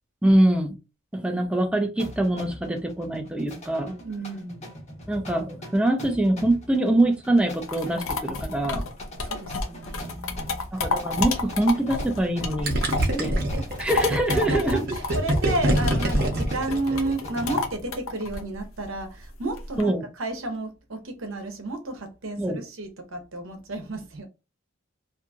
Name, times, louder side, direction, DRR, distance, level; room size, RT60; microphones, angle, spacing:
voice 1, 0.2-0.7 1.1-3.9 5.1-8.8 10.7-12.7 13.2-13.3 13.8-14.8 19.8-20.1 22.4-22.6, right 1 dB, 5° right, 0.4 m, -24 dB
sound 1, 2.0-17.8, equal, 35° left, 0.9 m, -42 dB
voice 2, 4.0-4.6 9.2-10.6 12.8-13.7 14.3-24.3, right 2 dB, 80° right, 0.9 m, -32 dB
sound 2, 7.4-13.2 13.5-19.8, left 3 dB, 90° left, 0.6 m, -30 dB
Gurgling, 12.6-17.3, right 1 dB, 50° right, 0.8 m, -25 dB
2.7 x 2.7 x 2.3 m
head